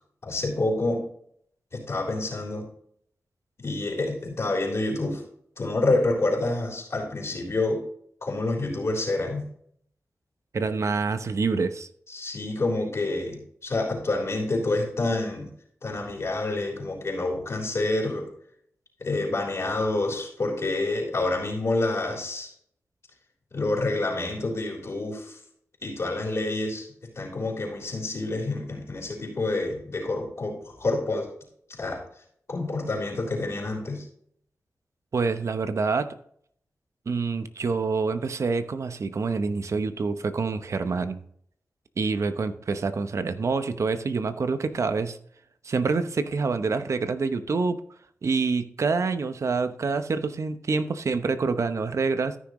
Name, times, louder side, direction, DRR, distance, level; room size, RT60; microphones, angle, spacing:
voice 1, 0.2-1.0 1.7-2.7 3.6-5.2 5.6-7.8 8.2-9.5 12.1-15.5 15.8-18.3 19.0-22.5 23.5-25.4 25.8-26.9 27.2-31.3 31.8-32.0 32.5-34.1, left 2 dB, 55° left, -1 dB, 3.6 m, -28 dB
voice 2, 10.5-11.9 35.1-36.2 37.1-41.2 42.0-45.2 45.6-47.8 48.2-52.4, right 4 dB, 65° right, 10 dB, 0.8 m, -26 dB
13.5 x 6.2 x 3.1 m, 0.63 s
cardioid pair, 55°, 5 cm